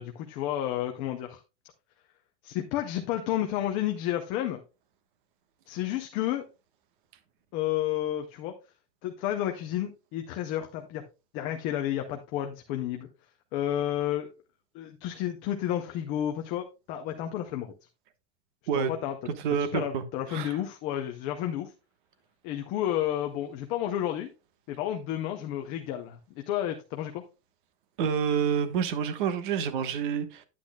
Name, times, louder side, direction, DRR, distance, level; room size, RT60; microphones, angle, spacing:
voice 1, 0.0-1.4 2.4-4.6 5.7-6.4 7.5-8.5 9.0-11.0 11.3-13.1 13.5-14.3 14.7-17.7 18.8-19.2 19.7-21.7 22.4-24.3 24.7-27.2, left 12 dB, 20° left, 0.4 m, -31 dB
voice 2, 19.3-20.0 20.3-20.6 28.0-30.4, right 7 dB, 50° right, 1.2 m, -28 dB
9.9 x 8.4 x 2.2 m
supercardioid pair, 180°, 32 cm